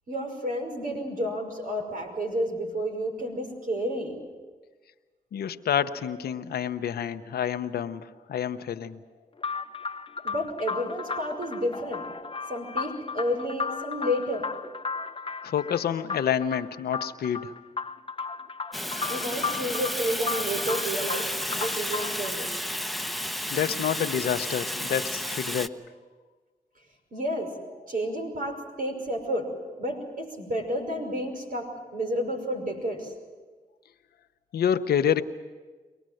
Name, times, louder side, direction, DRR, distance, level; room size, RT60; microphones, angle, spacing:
voice 1, 0.1-4.2 10.2-12.1 12.5-14.5 19.1-22.5 27.1-27.6 27.9-33.1, equal, 60° right, 2 dB, 5.7 m, -31 dB
voice 2, 5.3-9.0 15.4-17.5 23.5-25.7 34.5-35.2, left 9 dB, 85° left, 10 dB, 0.8 m, -28 dB
sound 1, 9.4-22.3, left 5 dB, 35° left, 0.8 m, -35 dB
Fire, 18.7-25.7, equal, ahead, 1.1 m, -32 dB
24.0 x 18.5 x 7.8 m, 1.3 s
supercardioid pair, 45°, 16 cm